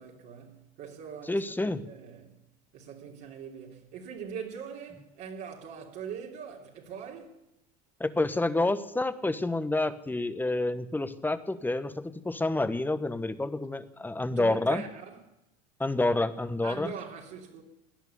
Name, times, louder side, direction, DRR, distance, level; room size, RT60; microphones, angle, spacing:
voice 1, 0.0-2.4 2.7-7.4 14.3-15.3 16.6-17.6, right 7 dB, 65° right, 2.9 m, -42 dB
voice 2, 1.3-1.8 8.0-14.8 15.8-16.9, left 2 dB, 10° left, 1.1 m, -28 dB
17.5 x 10.5 x 7.0 m
hypercardioid pair, 85°, 19 cm